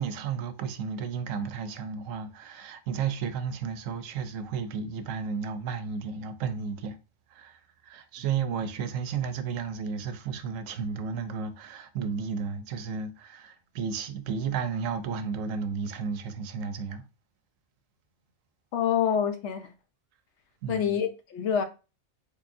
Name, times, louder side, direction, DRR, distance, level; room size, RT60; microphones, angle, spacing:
voice 1, 0.0-7.0 7.3-17.0 20.6-21.0, right 6 dB, 85° right, 1.0 m, -33 dB
voice 2, 18.7-19.7 20.7-21.6, left 8 dB, 65° left, 0.9 m, -26 dB
3.8 x 3.2 x 2.5 m
omnidirectional pair, 1.3 m